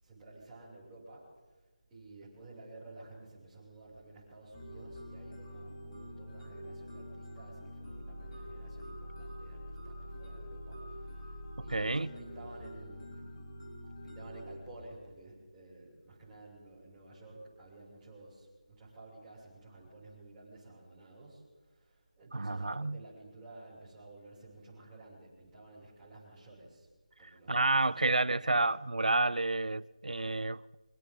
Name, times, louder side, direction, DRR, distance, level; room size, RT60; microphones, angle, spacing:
voice 1, 0.0-1.3 1.9-13.3 13.9-26.9 27.2-28.6, right 2 dB, 10° right, 7.4 m, -53 dB
sound 1, 4.5-14.6, equal, 40° left, 6.6 m, -46 dB
voice 2, 11.7-12.1 22.3-23.0 27.5-30.6, right 2 dB, 75° right, 0.7 m, -30 dB
26.5 x 26.0 x 4.1 m
figure-of-eight pair, 165°, 4 cm